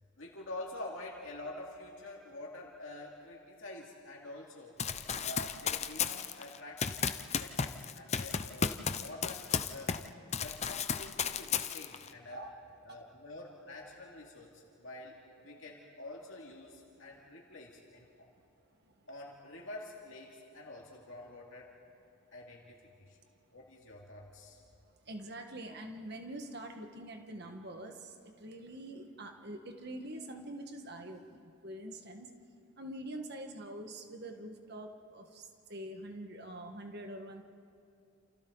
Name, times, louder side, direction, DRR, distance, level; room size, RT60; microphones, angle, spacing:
voice 1, 0.2-4.8 5.2-10.0 10.4-12.4 12.8-18.3 19.1-21.7 22.3-23.2 23.5-24.6, left 2 dB, 60° left, -2 dB, 2.6 m, -47 dB
Run, 4.8-10.1 10.3-12.1, left 6 dB, 30° left, 0.6 m, -34 dB
voice 2, 25.0-32.3 32.8-37.4, right 1 dB, 50° right, 4 dB, 1.7 m, -45 dB
29.5 x 28.0 x 4.0 m, 2.5 s
head